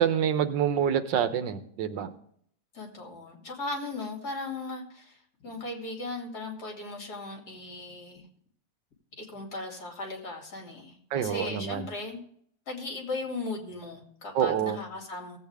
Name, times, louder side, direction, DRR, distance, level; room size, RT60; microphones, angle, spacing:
voice 1, 0.0-2.1 11.1-11.9 14.4-14.8, right 9 dB, 90° right, 10 dB, 1.6 m, -26 dB
voice 2, 2.7-8.3 9.2-12.2 12.7-15.4, left 2 dB, 60° left, 1 dB, 3.1 m, -37 dB
17.0 x 8.2 x 3.5 m, 0.64 s
omnidirectional pair, 1.9 m